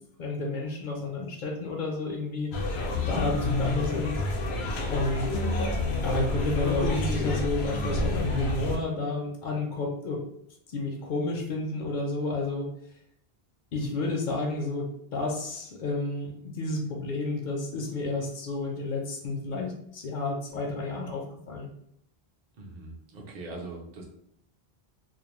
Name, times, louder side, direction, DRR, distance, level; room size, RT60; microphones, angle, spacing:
voice 1, 0.2-2.5 3.1-4.2 4.9-5.3 6.0-10.2 10.7-12.7 13.7-21.7, left 2 dB, 60° left, 1 dB, 0.6 m, -31 dB
sound 1, 2.5-8.8, left 2 dB, 85° left, 0.8 m, -29 dB
voice 2, 22.5-24.0, right 2 dB, 50° right, -2 dB, 0.6 m, -41 dB
2.4 x 2.0 x 2.9 m, 0.72 s
omnidirectional pair, 1.0 m